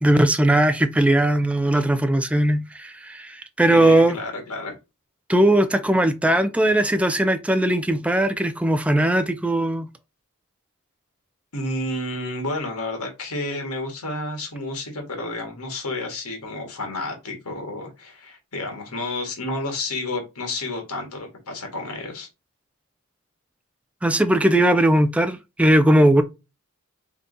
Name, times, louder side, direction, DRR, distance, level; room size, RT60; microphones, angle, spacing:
voice 1, 0.0-4.2 5.3-9.9 24.0-26.2, right 1 dB, 5° right, 0.4 m, -19 dB
voice 2, 3.7-4.7 11.5-22.3, left 2 dB, 85° left, 1.5 m, -30 dB
3.6 x 2.8 x 3.9 m
head